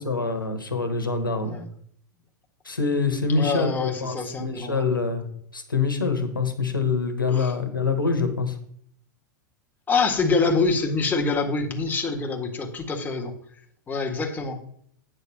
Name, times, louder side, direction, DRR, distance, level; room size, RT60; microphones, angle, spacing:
voice 1, 0.0-1.6 2.6-5.2 5.5-8.6, left 4 dB, 90° left, 5 dB, 1.5 m, -25 dB
voice 2, 3.3-4.9 7.3-7.5 9.9-13.3 13.9-14.6, left 4 dB, 15° left, 1 dB, 1.7 m, -25 dB
8.9 x 4.1 x 7.2 m, 0.65 s
figure-of-eight pair, 95°, 11 cm